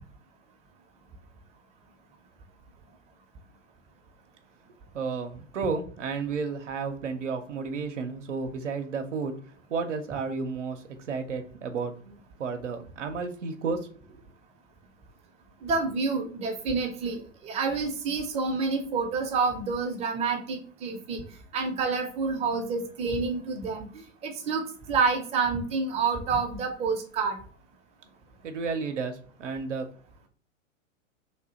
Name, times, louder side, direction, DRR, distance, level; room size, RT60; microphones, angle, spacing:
voice 1, 4.9-9.4 9.7-14.2 28.4-29.9, right 5 dB, 65° right, 5 dB, 0.7 m, -32 dB
voice 2, 15.6-21.2 21.5-27.4, right 4 dB, 15° right, 3 dB, 0.6 m, -28 dB
3.3 x 2.7 x 3.9 m, 0.44 s
figure-of-eight pair, 100°, 39 cm